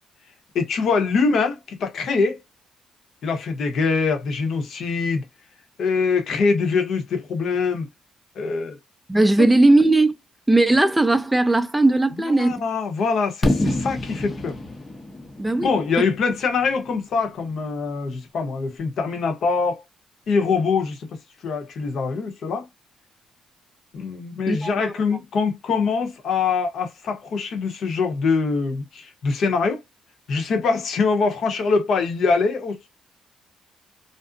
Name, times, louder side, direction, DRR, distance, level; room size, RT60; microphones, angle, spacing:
voice 1, 0.5-2.4 3.2-5.2 5.8-7.9 8.4-8.8 9.4-9.5 12.2-14.6 15.6-19.8 20.3-21.1 21.4-22.7 23.9-29.8 30.3-32.9, left 4 dB, 65° left, 0.9 m, -23 dB
voice 2, 9.1-10.2 10.5-12.5 15.4-15.7 24.5-25.2, right 2 dB, 10° right, 0.4 m, -18 dB
Fireworks, 13.4-17.3, left 1 dB, 25° left, 0.7 m, -27 dB
2.5 x 2.0 x 2.5 m
cardioid pair, 90°, 0 cm